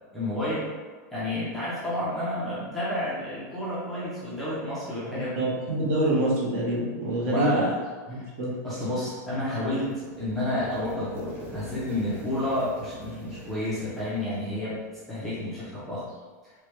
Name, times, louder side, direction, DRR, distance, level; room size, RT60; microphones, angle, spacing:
voice 1, 0.1-0.7 1.1-5.5 7.2-7.7 8.1-8.3 8.6-14.8 15.1-16.1, left 1 dB, ahead, -11 dB, 0.5 m, -30 dB
voice 2, 5.0-7.7 8.1-8.6, right 1 dB, 45° right, -4 dB, 0.8 m, -26 dB
sound 1, 9.2-15.2, equal, 20° right, 1.0 m, -43 dB
3.1 x 2.1 x 3.0 m, 1.4 s
supercardioid pair, 170°, 9 cm